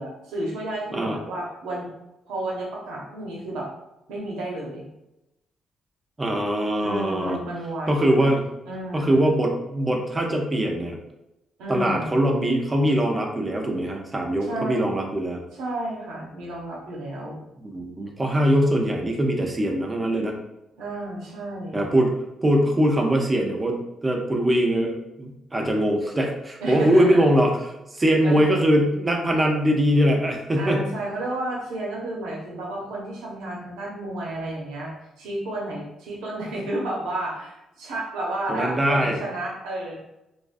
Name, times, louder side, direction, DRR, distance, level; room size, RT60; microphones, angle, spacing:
voice 1, 0.0-1.9 2.3-3.7 4.1-4.9 6.8-8.3 8.6-9.3 11.6-12.1 14.4-14.9 15.5-17.4 20.8-21.9 26.6-27.3 28.2-28.6 30.6-40.0, right 1 dB, 80° right, -3 dB, 0.8 m, -32 dB
voice 2, 6.2-7.4 7.9-8.4 8.9-11.0 11.7-15.4 17.6-20.3 21.7-22.1 22.4-27.5 27.9-30.8 38.5-39.2, equal, 25° right, 1 dB, 0.6 m, -22 dB
2.4 x 2.2 x 2.5 m, 0.92 s
supercardioid pair, 60°, 0 cm